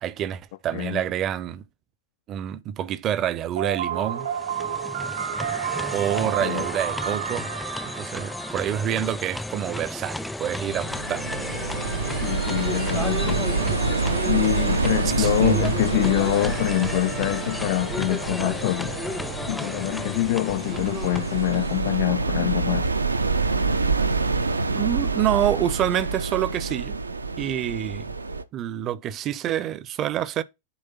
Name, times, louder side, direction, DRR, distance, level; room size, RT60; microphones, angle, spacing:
voice 1, 0.0-1.6 2.3-4.3 5.9-7.5 7.8-11.5 15.2-15.8 24.7-27.0 27.4-28.1 28.5-30.4, right 11 dB, 30° right, 0.6 m, -27 dB
voice 2, 0.7-1.0 6.4-6.6 12.1-13.5 14.3-19.0 19.5-22.9, left 18 dB, 50° left, 0.3 m, -25 dB
sound 1, 3.6-9.4, right 8 dB, 60° right, 1.1 m, -31 dB
sound 2, 4.1-22.1, left 2 dB, 5° left, 0.6 m, -33 dB
sound 3, 10.7-28.4, right 3 dB, 80° right, 0.6 m, -27 dB
7.2 x 3.3 x 5.6 m
figure-of-eight pair, 90°, 0 cm